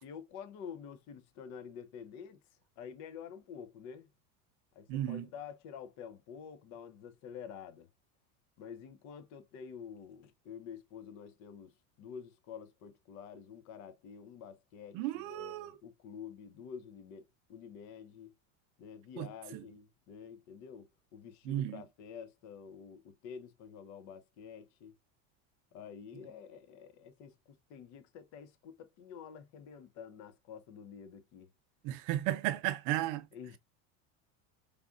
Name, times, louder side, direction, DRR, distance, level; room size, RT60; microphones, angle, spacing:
voice 1, 0.0-2.4 2.8-4.1 4.7-7.9 8.6-17.2 17.5-18.3 18.8-24.9 25.7-31.5 33.3-33.6, left 7 dB, 45° left, 0.6 m, -48 dB
voice 2, 4.9-5.3 14.9-15.7 19.2-19.3 19.5-19.6 21.4-21.8 31.8-33.2, right 14 dB, 50° right, 0.6 m, -34 dB
4.9 x 2.4 x 2.4 m
supercardioid pair, 140°, 39 cm